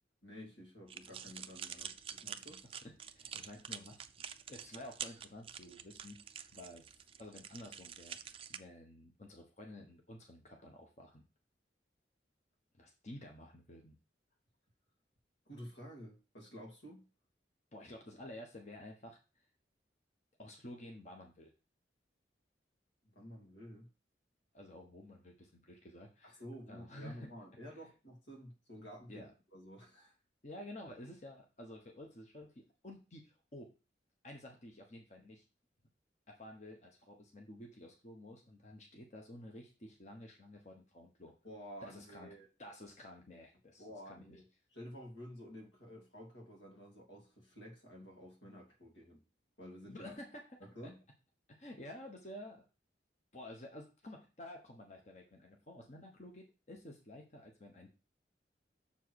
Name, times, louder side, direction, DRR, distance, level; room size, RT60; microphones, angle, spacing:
voice 1, 0.2-2.6 15.5-17.0 23.1-23.9 26.2-30.1 41.4-42.5 43.8-44.5 44.7-49.2 49.6-50.2 50.6-51.0, equal, 90° left, 2.7 m, -51 dB
sound 1, 0.9-8.6, right 8 dB, 30° right, 0.4 m, -47 dB
voice 2, 2.6-4.1 4.5-6.2 6.5-8.2 8.5-11.2 12.7-14.0 17.7-19.2 20.4-21.5 24.5-26.4 26.7-27.3 29.1-29.3 30.4-33.7 34.2-35.4 36.3-41.3 41.8-42.3 42.6-44.4 49.8-50.4 50.8-50.9 51.5-52.6 53.3-57.9, left 1 dB, 40° left, 1.1 m, -51 dB
7.0 x 4.7 x 4.7 m
head